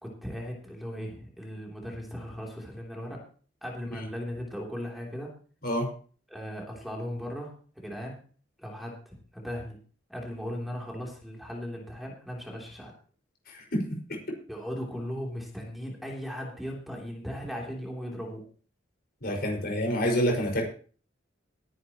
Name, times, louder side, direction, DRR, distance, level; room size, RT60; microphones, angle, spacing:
voice 1, 0.0-3.2 3.6-5.3 6.3-8.2 8.6-9.8 10.1-12.9 14.5-18.5, equal, ahead, -1 dB, 3.3 m, -37 dB
voice 2, 13.5-14.2 19.2-20.7, equal, 55° left, 1 dB, 5.3 m, -28 dB
21.0 x 10.0 x 3.0 m, 0.41 s
head